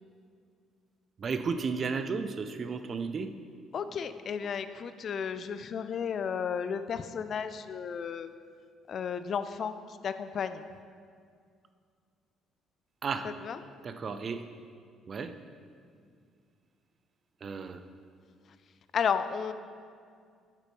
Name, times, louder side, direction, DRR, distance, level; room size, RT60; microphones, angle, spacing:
voice 1, 1.2-3.3 13.0-13.3 13.8-14.4 15.1-15.3 17.4-17.8, right 5 dB, 40° right, 9 dB, 0.6 m, -33 dB
voice 2, 3.7-8.3 8.9-9.7 10.0-10.6 13.4-13.6 18.9-19.5, left 7 dB, 45° left, 12 dB, 0.4 m, -33 dB
12.0 x 8.9 x 3.4 m, 2.2 s
figure-of-eight pair, 50°, 0 cm